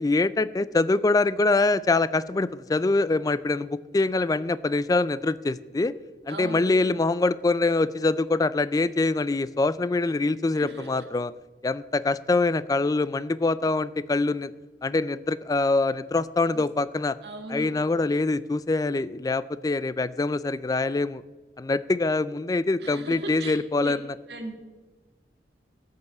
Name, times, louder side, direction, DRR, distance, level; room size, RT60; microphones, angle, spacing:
voice 1, 0.0-5.9 6.3-11.3 11.6-14.5 14.8-17.2 17.5-21.2 21.6-24.1, left 3 dB, 20° left, 17 dB, 0.3 m, -24 dB
voice 2, 6.3-6.7 10.5-11.0 16.5-16.7 17.2-17.8 22.8-23.9 24.3-24.5, right 2 dB, 70° right, 5 dB, 1.9 m, -37 dB
13.5 x 5.5 x 8.1 m, 1.2 s
head